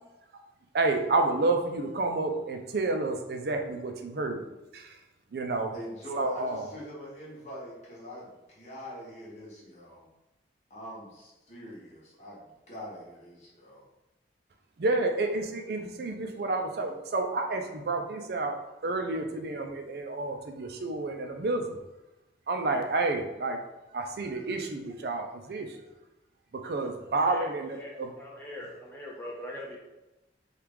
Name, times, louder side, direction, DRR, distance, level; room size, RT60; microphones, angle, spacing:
voice 1, 0.7-4.5 4.7-5.0 5.3-5.7 6.2-6.7 14.8-18.5 18.8-21.8 22.5-23.6 23.9-25.7 26.6-28.1, right 2 dB, 60° right, 5 dB, 0.4 m, -30 dB
voice 2, 5.7-10.1 10.7-13.9, equal, 40° left, -5 dB, 1.0 m, -44 dB
voice 3, 27.3-29.8, left 1 dB, 10° left, -4 dB, 0.4 m, -42 dB
3.0 x 2.4 x 3.4 m, 1.0 s
head